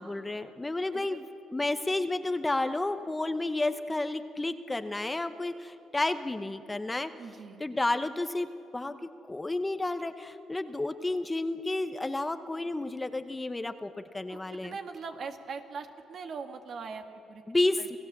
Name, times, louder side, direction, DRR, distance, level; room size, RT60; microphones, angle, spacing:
voice 1, 0.0-7.1 7.6-8.5 8.7-14.7 17.5-18.0, left 2 dB, 15° left, 10 dB, 0.9 m, -31 dB
voice 2, 7.2-7.6 14.3-17.4 17.8-18.0, right 5 dB, 60° right, 6 dB, 1.7 m, -41 dB
28.0 x 16.5 x 7.3 m, 2.7 s
cardioid pair, 90°, 0 cm